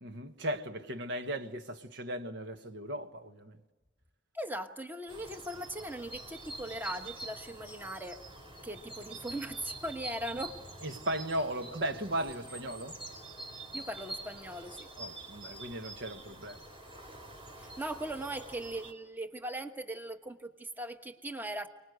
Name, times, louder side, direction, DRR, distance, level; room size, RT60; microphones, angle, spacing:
voice 1, 0.0-3.6 10.8-13.0 15.0-16.6, right 1 dB, 65° right, 1.5 m, -37 dB
voice 2, 4.3-8.2 8.6-10.6 13.7-14.9 17.6-21.7, right 1 dB, 10° right, 1.2 m, -39 dB
sound 1, 5.1-18.9, right 2 dB, 30° right, 4.0 m, -46 dB
29.5 x 20.5 x 8.1 m
head